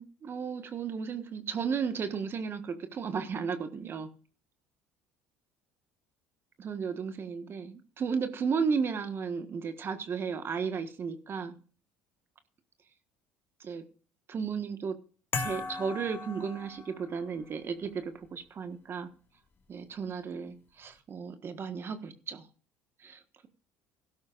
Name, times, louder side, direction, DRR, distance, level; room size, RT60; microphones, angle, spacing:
voice 1, 0.0-4.1 6.6-11.5 13.6-13.9 14.3-15.0 15.3-19.1 19.7-22.5 23.0-23.5, right 6 dB, 40° right, 1.4 m, -34 dB
sound 1, 15.3-17.2, left 4 dB, 35° left, 1.9 m, -37 dB
16.5 x 12.5 x 2.5 m
supercardioid pair, 75°, 6 cm